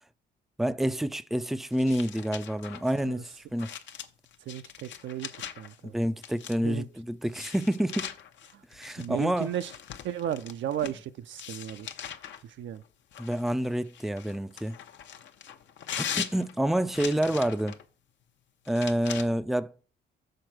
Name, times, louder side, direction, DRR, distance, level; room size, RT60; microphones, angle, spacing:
voice 1, 0.6-3.7 5.8-8.1 8.7-9.5 13.2-14.8 16.0-17.8 18.7-19.7, right 1 dB, ahead, 0.4 m, -28 dB
sound 1, 1.7-5.8 6.2-6.8 7.3-11.0 11.4-12.4 13.1-17.8 18.6-19.2, left 9 dB, 70° left, 0.8 m, -40 dB
voice 2, 4.5-5.9 6.6-6.9 8.5-8.6 9.0-9.7 10.0-11.9 12.4-12.8, right 11 dB, 70° right, 0.5 m, -34 dB
6.7 x 4.2 x 6.1 m
cardioid pair, 90°, 20 cm